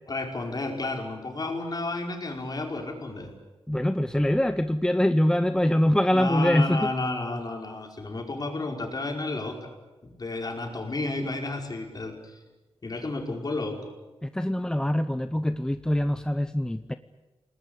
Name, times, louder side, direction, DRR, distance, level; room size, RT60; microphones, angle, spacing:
voice 1, 0.1-3.4 6.1-9.7 10.0-12.4 12.8-13.9, left 2 dB, 40° left, 3 dB, 5.2 m, -32 dB
voice 2, 3.7-6.9 14.2-17.0, left 1 dB, 5° left, 10 dB, 0.7 m, -24 dB
29.0 x 20.0 x 8.3 m, 1.2 s
wide cardioid pair, 110°, 10 cm